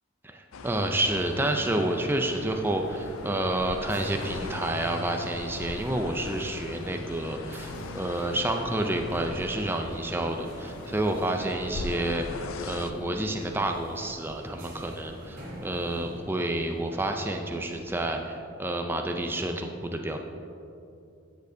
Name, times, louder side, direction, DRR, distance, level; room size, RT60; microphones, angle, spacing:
voice 1, 0.2-20.2, right 1 dB, 10° right, 3 dB, 0.4 m, -29 dB
sound 1, 0.5-12.9, left 3 dB, 80° left, 0.4 m, -41 dB
sound 2, 1.6-18.3, equal, 10° left, 1.7 m, -49 dB
sound 3, 2.1-16.2, equal, 45° right, 2.0 m, -46 dB
13.0 x 6.7 x 2.7 m, 2.7 s
head